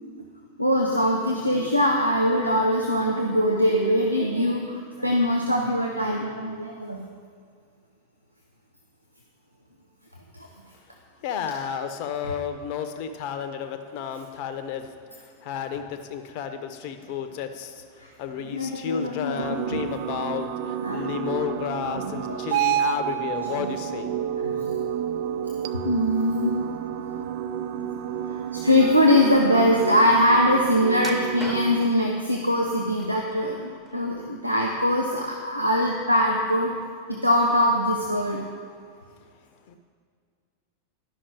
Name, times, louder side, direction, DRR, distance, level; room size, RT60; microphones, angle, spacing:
voice 1, 0.6-7.0 10.3-10.5 12.2-12.3 18.3-19.8 20.8-21.2 21.9-22.7 23.6-23.7 24.4-24.8 25.8-26.7 28.3-38.4, left 1 dB, 90° right, 0 dB, 0.7 m, -23 dB
voice 2, 11.2-14.9 15.4-17.8 18.2-24.1 39.7-39.8, left 7 dB, 45° left, 7 dB, 0.7 m, -32 dB
sound 1, 19.4-31.9, right 10 dB, 50° right, 0.3 m, -30 dB
sound 2, 31.0-32.0 32.7-33.4 33.8-34.7 35.0-35.2 35.7-35.8, equal, ahead, 0.9 m, -39 dB
11.5 x 5.7 x 4.9 m, 2.2 s
figure-of-eight pair, 90°, 0 cm